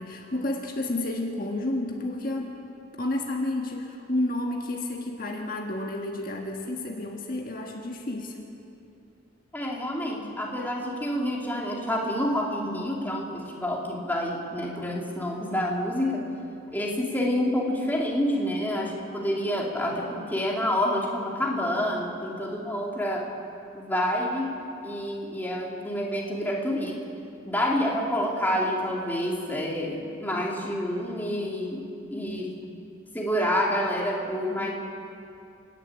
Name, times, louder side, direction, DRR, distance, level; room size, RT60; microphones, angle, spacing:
voice 1, 0.0-2.6 3.0-8.5, left 1 dB, 45° left, 1 dB, 1.6 m, -31 dB
voice 2, 9.5-16.2 16.7-23.3 23.7-24.5 24.8-27.0 27.4-31.8 32.1-32.5 33.1-34.7, equal, 10° left, -2 dB, 2.6 m, -28 dB
29.0 x 11.0 x 8.8 m, 2.6 s
head